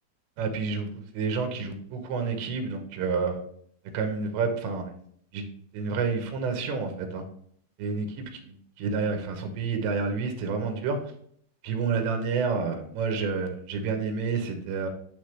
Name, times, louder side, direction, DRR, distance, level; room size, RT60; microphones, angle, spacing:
voice 1, 0.4-3.4 3.9-4.9 5.3-5.5 5.7-7.2 7.8-11.0 11.6-14.9, right 5 dB, 85° right, 5 dB, 3.3 m, -29 dB
10.5 x 3.8 x 3.2 m, 0.63 s
omnidirectional pair, 5.0 m